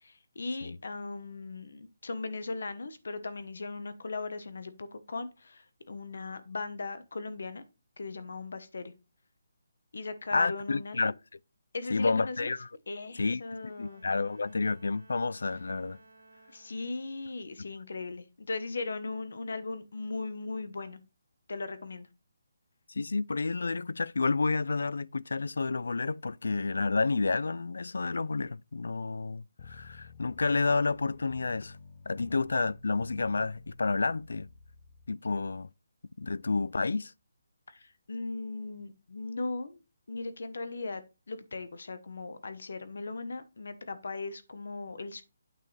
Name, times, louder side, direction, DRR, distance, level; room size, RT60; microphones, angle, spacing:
voice 1, 0.0-7.6 8.0-8.9 9.9-11.1 11.7-12.5 12.9-14.0 16.5-21.0 21.5-22.1 37.7-39.8 40.1-45.2, left 3 dB, 60° left, 1.1 m, -38 dB
voice 2, 10.3-11.1 11.9-12.7 13.2-16.0 22.9-31.8 32.1-34.5 35.1-35.7 36.2-37.1, left 3 dB, 80° left, 0.3 m, -30 dB
Bowed string instrument, 13.4-17.5, right 2 dB, 60° right, 1.8 m, -59 dB
sound 1, 29.6-35.1, left 4 dB, 30° left, 0.7 m, -51 dB
8.8 x 6.4 x 3.3 m
hypercardioid pair, 180°, 0 cm